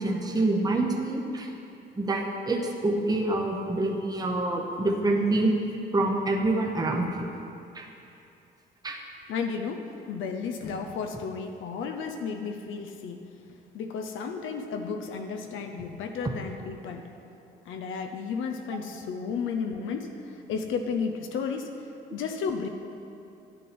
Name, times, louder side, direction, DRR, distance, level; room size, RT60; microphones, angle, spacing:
voice 1, 0.0-1.5 2.0-5.5 5.9-7.3 7.7-7.8 8.8-9.0, right 2 dB, 20° right, 1 dB, 0.9 m, -26 dB
voice 2, 9.3-13.2 13.7-17.1 17.7-22.7, left 5 dB, 80° left, 4 dB, 0.6 m, -33 dB
10.0 x 6.7 x 4.3 m, 2.7 s
cardioid pair, 90°, 20 cm